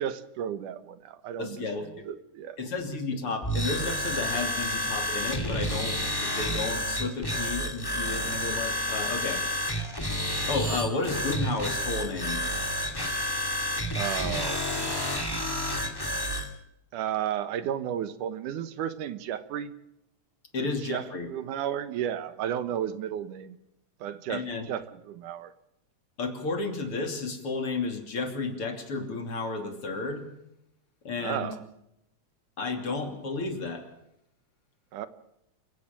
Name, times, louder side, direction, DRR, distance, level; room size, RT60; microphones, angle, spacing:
voice 1, 0.0-2.6 13.9-15.4 16.9-19.7 20.6-23.6 24.0-25.5 31.2-31.6 34.9-35.1, right 10 dB, 80° right, 13 dB, 2.7 m, -33 dB
voice 2, 1.4-2.0 2.6-9.4 10.5-12.4 20.5-21.3 24.3-24.7 26.2-30.3 31.1-31.5 32.6-33.8, left 3 dB, 45° left, 6 dB, 3.6 m, -32 dB
sound 1, 3.4-16.5, equal, 10° left, 2.2 m, -30 dB
28.5 x 15.5 x 7.5 m, 0.83 s
omnidirectional pair, 3.6 m